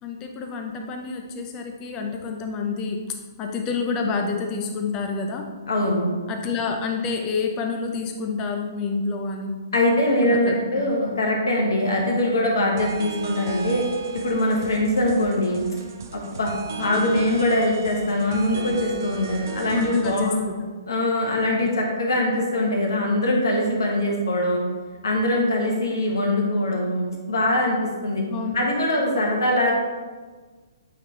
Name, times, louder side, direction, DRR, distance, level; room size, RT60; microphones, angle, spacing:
voice 1, 0.0-3.0 3.4-5.5 6.3-9.6 10.2-10.9 16.8-17.2 19.7-20.5 28.3-28.6, left 5 dB, 25° left, 3 dB, 0.7 m, -28 dB
voice 2, 5.7-6.0 9.7-13.8 14.1-15.6 16.1-16.5 16.8-20.4 20.9-24.6 25.0-28.2 28.5-29.7, left 1 dB, 70° left, 0 dB, 1.5 m, -22 dB
sound 1, 12.8-20.2, right 4 dB, 55° right, 0.6 m, -36 dB
8.1 x 3.7 x 3.2 m, 1.4 s
figure-of-eight pair, 130°, 2 cm